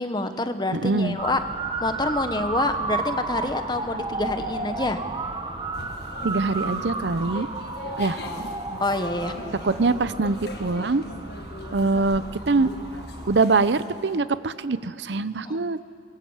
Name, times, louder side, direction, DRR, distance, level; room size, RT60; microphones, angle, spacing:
voice 1, 0.0-1.4 1.8-5.0 8.2-8.4 8.8-9.3 15.4-15.6, left 2 dB, 25° left, 8 dB, 1.1 m, -27 dB
voice 2, 0.7-1.2 6.2-7.5 8.0-8.2 9.6-11.0 11.7-12.7 13.3-15.8, right 3 dB, 75° right, 14 dB, 0.7 m, -23 dB
Motor vehicle (road) / Siren, 1.2-13.4, right 3 dB, 25° right, 1.4 m, -33 dB
sound 1, 5.7-14.2, left 2 dB, 60° left, 1.6 m, -41 dB
26.0 x 22.0 x 7.3 m, 2.4 s
head